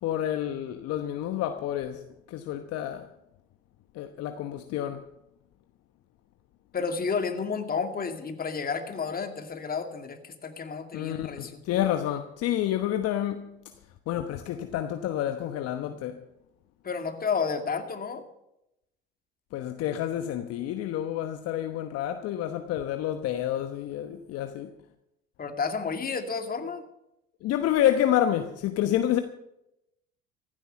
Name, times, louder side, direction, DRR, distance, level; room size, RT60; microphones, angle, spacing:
voice 1, 0.0-3.1 3.9-5.1 10.9-13.5 14.1-16.2 19.5-24.7 27.4-29.2, left 11 dB, 55° left, 1.1 m, -29 dB
voice 2, 6.7-11.8 16.8-18.2 25.4-26.8, left 5 dB, 30° left, 2.3 m, -31 dB
15.5 x 12.5 x 5.7 m
hypercardioid pair, 65°, 30 cm